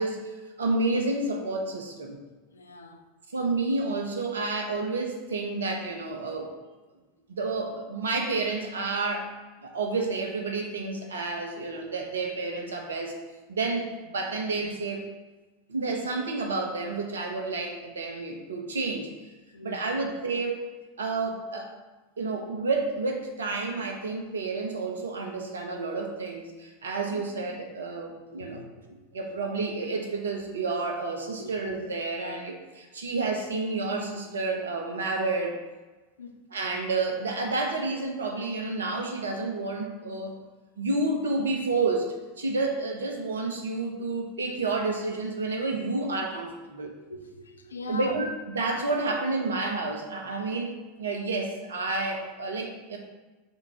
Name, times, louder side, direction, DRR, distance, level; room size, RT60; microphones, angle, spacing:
voice 1, 0.0-2.2 3.3-6.5 7.3-9.3 9.6-13.2 13.5-15.0 15.7-19.1 19.6-20.6 21.0-21.7 22.2-28.6 29.1-35.6 36.5-40.3 40.8-46.9 47.9-48.3 48.5-53.0, right 3 dB, 70° right, 0.9 m, -30 dB
voice 2, 2.5-3.1 19.5-19.8 27.1-27.3 28.3-29.3 31.4-31.7 36.2-36.4 47.1-48.2, left 2 dB, 75° left, 0.6 m, -41 dB
5.0 x 3.7 x 5.6 m
figure-of-eight pair, 85°, 0 cm